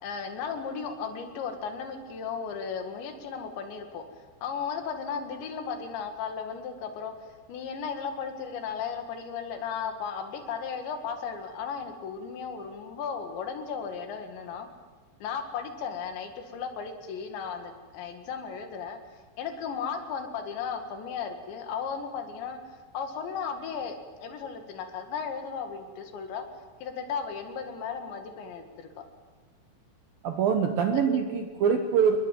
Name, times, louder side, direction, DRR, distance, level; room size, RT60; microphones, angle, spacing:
voice 1, 0.0-14.7 15.2-19.0 19.4-26.5 26.8-29.0 30.9-31.3, left 6 dB, 70° left, 6 dB, 4.1 m, -35 dB
voice 2, 30.2-32.2, right 7 dB, 70° right, 6 dB, 2.3 m, -24 dB
28.0 x 21.0 x 7.7 m, 1.4 s
omnidirectional pair, 5.6 m